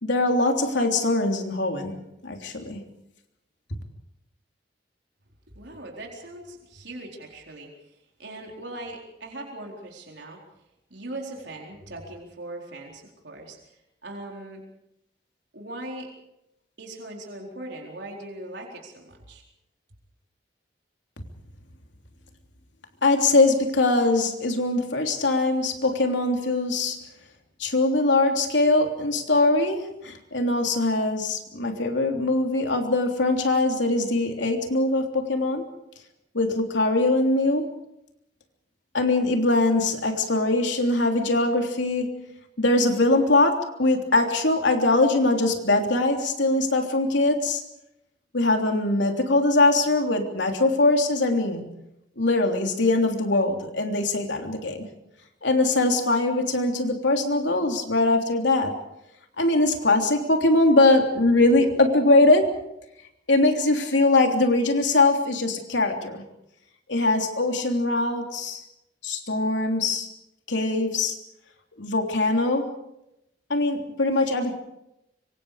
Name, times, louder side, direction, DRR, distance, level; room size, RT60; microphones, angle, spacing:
voice 1, 0.0-2.0 2.2-2.8 23.0-27.0 27.6-35.7 36.3-37.7 38.9-42.1 42.6-47.6 48.3-51.6 52.2-54.9 55.4-58.7 59.4-62.5 63.3-66.2 66.9-68.6 69.0-70.1 70.5-71.2 71.8-72.7 73.5-74.5, left 2 dB, 85° left, 3 dB, 3.4 m, -22 dB
voice 2, 5.5-10.4 10.9-14.6 15.5-16.1 16.8-19.4, right 1 dB, 75° right, 0 dB, 4.2 m, -40 dB
25.5 x 25.0 x 5.0 m, 0.83 s
head